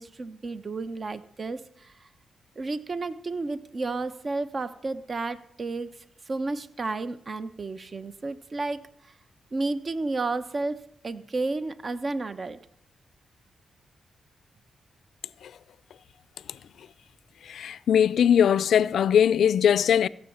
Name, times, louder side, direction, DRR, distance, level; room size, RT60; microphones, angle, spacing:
voice 1, 0.0-1.9 2.6-5.9 6.3-8.9 9.5-12.6, right 3 dB, 40° right, 0.9 m, -32 dB
voice 2, 17.5-20.1, left 8 dB, 75° left, 0.4 m, -20 dB
15.5 x 6.4 x 7.2 m
cardioid pair, 70°, 0 cm